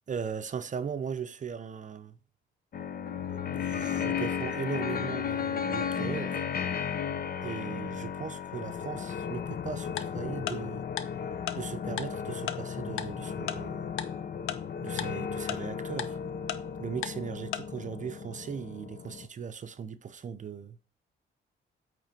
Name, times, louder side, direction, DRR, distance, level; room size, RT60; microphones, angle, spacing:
voice 1, 0.1-2.2 3.3-6.4 7.4-10.9 11.5-14.0 14.8-16.2 16.8-20.8, right 7 dB, 40° right, 0.6 m, -38 dB
sound 1, 2.7-19.3, left 7 dB, 50° left, 0.8 m, -34 dB
Tick-tock, 10.0-10.1 10.5-10.6 11.0-11.1 11.5-11.6 12.0-12.1 12.5-12.6 13.0-13.1 13.5-13.6 14.0-14.1 14.5-14.6 15.0-15.1 15.5-15.6 16.0-16.1 16.5-16.6 17.0-17.1 17.5-17.6, left 11 dB, 85° left, 0.7 m, -32 dB
8.6 x 3.3 x 5.7 m
cardioid pair, 90°, 20 cm